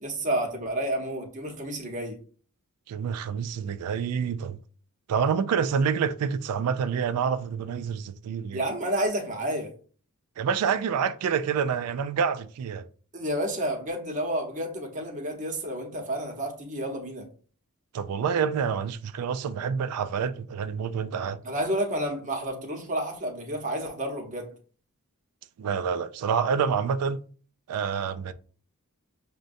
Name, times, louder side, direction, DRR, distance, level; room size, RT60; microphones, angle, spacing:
voice 1, 0.0-2.2 8.5-9.7 13.1-17.3 21.4-24.5, right 1 dB, 35° right, 0.9 m, -30 dB
voice 2, 2.9-4.6 5.1-8.6 10.4-12.9 17.9-21.4 25.6-27.2 27.7-28.3, right 6 dB, 85° right, 0.3 m, -27 dB
6.3 x 2.2 x 2.5 m
head